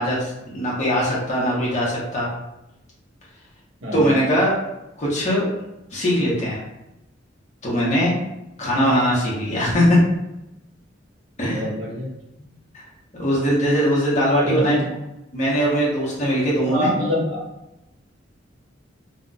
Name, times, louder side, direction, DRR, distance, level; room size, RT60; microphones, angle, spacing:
voice 1, 0.0-2.3 3.9-4.6 5.0-5.5 5.9-6.6 7.6-8.2 8.6-10.0 11.4-11.6 12.7-12.8 13.2-14.7 15.3-16.9, equal, 40° left, -6 dB, 0.8 m, -20 dB
voice 2, 11.5-12.1 14.4-14.9 16.6-17.4, left 1 dB, 65° right, -4 dB, 1.0 m, -25 dB
3.8 x 2.2 x 2.3 m, 0.90 s
head